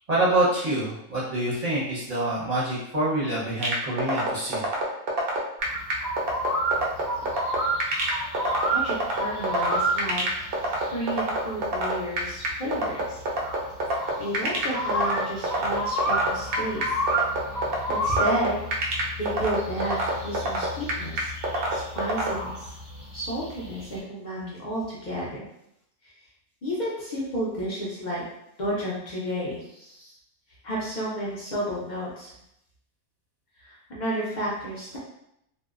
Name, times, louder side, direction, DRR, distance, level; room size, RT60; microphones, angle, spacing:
voice 1, 0.0-4.7, right 1 dB, 35° right, -8 dB, 0.6 m, -26 dB
sound 1, 3.6-22.3, right 2 dB, 80° right, 0.5 m, -26 dB
sound 2, 5.6-24.0, right 1 dB, 15° left, 0.7 m, -31 dB
voice 2, 8.7-10.3 10.9-13.2 14.2-16.9 17.9-18.6 19.2-21.3 21.7-22.7 23.1-25.4 26.0-26.1 26.6-28.2 28.6-30.1 30.6-32.3 33.6-35.0, equal, 70° left, -6 dB, 0.4 m, -31 dB
2.5 x 2.0 x 2.4 m, 0.78 s
omnidirectional pair, 1.5 m